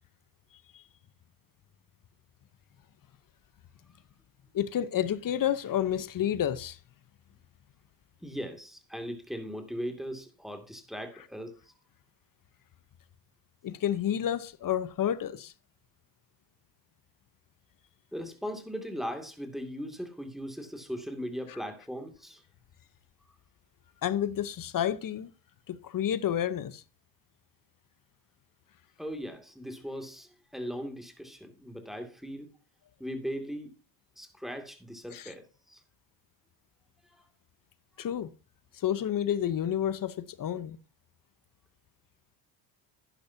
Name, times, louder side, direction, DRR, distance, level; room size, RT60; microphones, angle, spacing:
voice 1, 4.5-6.8 13.6-15.5 24.0-25.3 25.7-26.8 35.1-35.3 38.0-38.3 38.8-40.8, left 10 dB, 45° left, 0.9 m, -30 dB
voice 2, 8.2-11.7 18.1-22.4 29.0-32.5 33.0-33.7 34.2-35.8 37.1-37.2 38.0-38.1, equal, ahead, 2.4 m, -39 dB
10.5 x 10.5 x 2.8 m
supercardioid pair, 80°, 47 cm